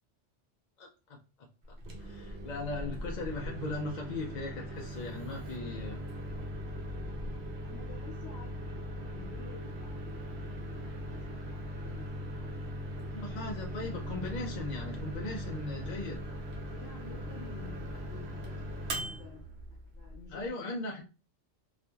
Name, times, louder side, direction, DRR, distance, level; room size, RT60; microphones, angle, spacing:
voice 1, 0.8-6.0 13.1-16.2 20.3-21.0, left 3 dB, 55° left, 0.5 m, -39 dB
Microwave oven, 1.7-20.5, equal, 70° right, 0.9 m, -40 dB
voice 2, 7.6-13.3 16.7-20.5, left 5 dB, 80° left, 1.0 m, -52 dB
2.8 x 2.4 x 2.2 m
omnidirectional pair, 1.2 m